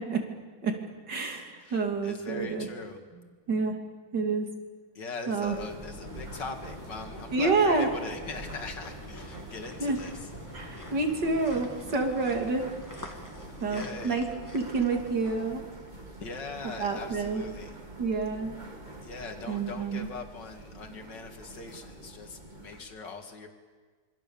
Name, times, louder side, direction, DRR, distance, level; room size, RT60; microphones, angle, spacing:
voice 1, 1.1-2.7 3.5-3.7 4.1-4.5 5.3-5.6 7.3-7.9 9.8-10.0 10.5-12.6 13.6-14.3 14.5-15.6 16.6-17.4 18.0-18.5 19.5-20.1, right 4 dB, 50° right, 3 dB, 3.3 m, -28 dB
voice 2, 1.6-3.0 4.9-10.3 13.7-14.3 16.2-17.8 19.0-23.5, left 3 dB, 55° left, 4 dB, 2.9 m, -41 dB
sound 1, 5.4-22.8, right 1 dB, 20° right, 2.1 m, -46 dB
sound 2, 5.6-16.0 16.5-16.6, left 1 dB, 10° left, 1.9 m, -47 dB
26.5 x 24.5 x 7.2 m, 1.5 s
omnidirectional pair, 2.4 m